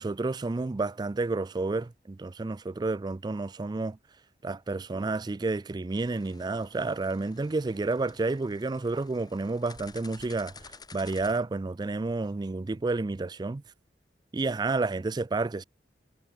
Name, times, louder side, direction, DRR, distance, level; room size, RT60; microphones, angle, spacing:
voice 1, 0.0-4.0 4.4-13.6 14.3-15.6, right 3 dB, 25° right, 0.4 m, -30 dB
sound 1, 5.9-11.4, left 4 dB, 25° left, 6.2 m, -51 dB
head